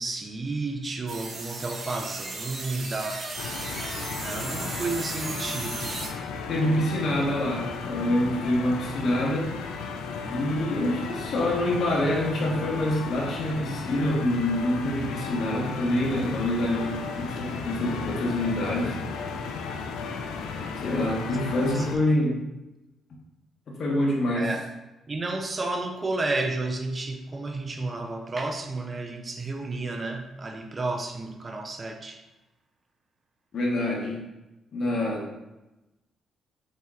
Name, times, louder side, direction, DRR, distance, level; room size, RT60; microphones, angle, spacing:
voice 1, 0.0-3.3 4.2-6.0 21.7-21.9 24.3-24.7 25.1-32.2, right 2 dB, 35° right, 4 dB, 0.5 m, -31 dB
sound 1, 1.1-6.1, right 3 dB, 50° right, 0.8 m, -36 dB
sound 2, 3.4-22.0, left 5 dB, 90° left, 0.4 m, -35 dB
voice 2, 6.5-9.5 10.3-19.0 20.8-22.4 23.8-24.5 33.5-34.2 34.7-35.3, left 1 dB, 60° left, -2 dB, 1.2 m, -26 dB
4.3 x 4.1 x 2.4 m, 1.0 s
cardioid pair, 70°, 0 cm